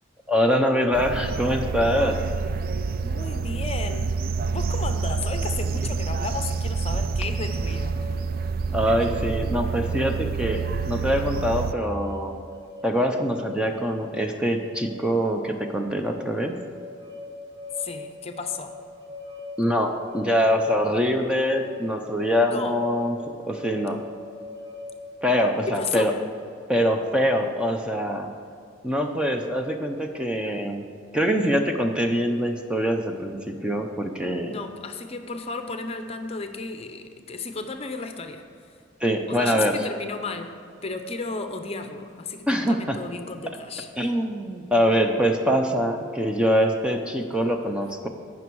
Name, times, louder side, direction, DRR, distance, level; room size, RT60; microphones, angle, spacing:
voice 1, 0.3-2.2 8.7-12.3 12.8-16.5 19.6-23.2 23.5-24.0 25.2-26.1 26.7-28.3 28.8-30.8 31.1-34.6 39.0-39.8 42.5-43.0 44.0-48.1, equal, 5° right, 3 dB, 0.6 m, -24 dB
sound 1, 0.9-11.7, right 4 dB, 50° right, 0.4 m, -28 dB
voice 2, 3.0-4.2 4.5-8.0 17.8-18.7 22.5-22.8 25.7-26.1 34.4-38.7 39.3-40.5 40.8-44.1, left 4 dB, 35° left, 7 dB, 0.7 m, -33 dB
sound 2, 7.2-25.9, left 3 dB, 85° right, 2.7 m, -42 dB
18.0 x 6.1 x 4.7 m, 2.4 s
head